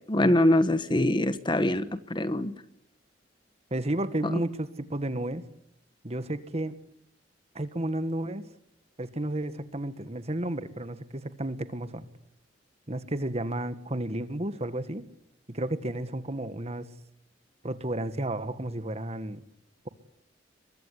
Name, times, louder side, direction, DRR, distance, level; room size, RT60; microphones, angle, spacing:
voice 1, 0.1-2.5, left 1 dB, 25° left, 12 dB, 1.3 m, -24 dB
voice 2, 3.7-5.5 6.0-6.7 7.6-8.4 9.0-12.1 12.9-15.1 15.5-16.9 17.6-19.4, right 1 dB, 35° right, 12 dB, 1.8 m, -32 dB
23.0 x 22.5 x 10.0 m, 0.75 s
head